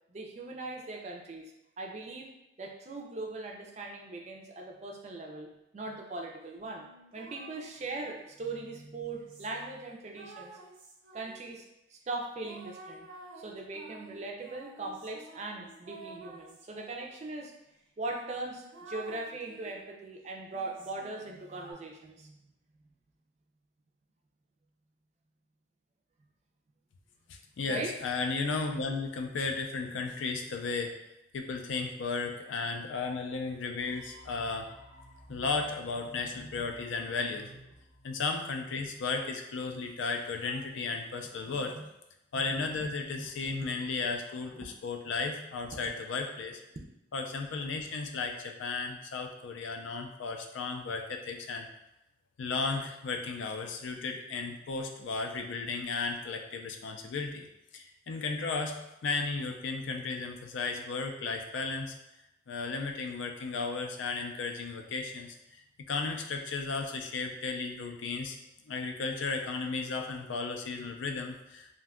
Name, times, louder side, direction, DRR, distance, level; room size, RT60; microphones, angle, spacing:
voice 1, 0.1-2.3 2.6-5.5 5.7-6.9 7.1-10.5 11.1-11.6 11.9-13.1 13.4-17.5 18.0-22.4 27.7-27.9 35.3-35.5 36.1-36.5 41.5-41.9 42.3-42.8 43.1-43.3 43.6-43.7 45.7-45.9, right 2 dB, 35° right, 1 dB, 0.3 m, -40 dB
sound 1, 6.6-8.3 9.0-11.6 12.4-17.1 17.7-17.8 18.1-19.9 20.5-21.7, right 2 dB, 85° right, 0.6 m, -51 dB
voice 2, 27.3-30.9 31.3-34.7 35.3-37.5 38.0-41.8 42.3-46.6 47.1-51.7 52.4-57.5 57.7-58.8 59.0-62.0 62.5-65.4 65.9-68.4 68.7-71.8, left 4 dB, 75° left, 4 dB, 0.4 m, -34 dB
sound 2, 33.8-38.9, equal, 40° left, 0.8 m, -55 dB
2.6 x 2.2 x 3.5 m, 0.88 s
head